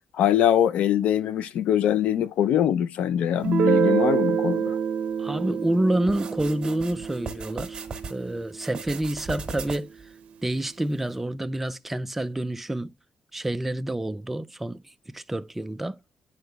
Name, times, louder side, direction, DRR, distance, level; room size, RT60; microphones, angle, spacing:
voice 1, 0.1-4.7, left 10 dB, 80° left, 0.5 m, -23 dB
Guitar, 3.4-8.9, right 7 dB, 65° right, 0.6 m, -27 dB
voice 2, 5.2-7.8 8.1-9.9 10.4-12.9 13.3-16.0, right 1 dB, 10° right, 0.3 m, -28 dB
sound 1, 6.1-8.2 8.6-10.0, right 5 dB, 35° right, 1.4 m, -37 dB
11.0 x 4.4 x 2.3 m
cardioid pair, 135°, 2 cm